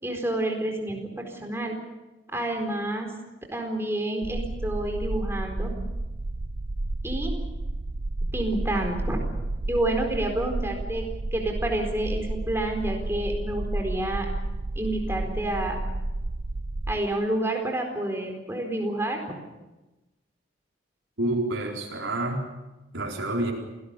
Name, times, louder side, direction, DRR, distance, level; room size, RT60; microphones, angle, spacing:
voice 1, 0.0-1.8 2.3-3.1 3.5-5.7 7.0-7.3 8.3-9.3 9.7-11.0 11.3-14.3 14.7-15.8 16.9-19.4, right 1 dB, 15° right, 3 dB, 4.4 m, -29 dB
sound 1, 4.2-17.0, right 2 dB, 50° right, 0.7 m, -31 dB
voice 2, 21.2-22.4 22.9-23.5, right 2 dB, 90° right, -2 dB, 4.5 m, -28 dB
28.0 x 18.0 x 6.8 m, 1.1 s
head